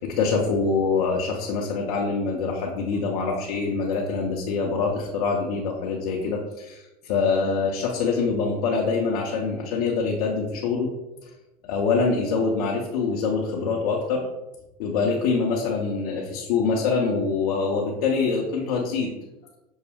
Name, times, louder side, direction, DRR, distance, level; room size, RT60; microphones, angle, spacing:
voice 1, 0.0-10.9 11.2-11.3 11.6-14.3 14.8-19.1, left 4 dB, 80° left, -1 dB, 0.7 m, -25 dB
6.1 x 2.1 x 3.4 m, 0.97 s
hypercardioid pair, 95°, 20 cm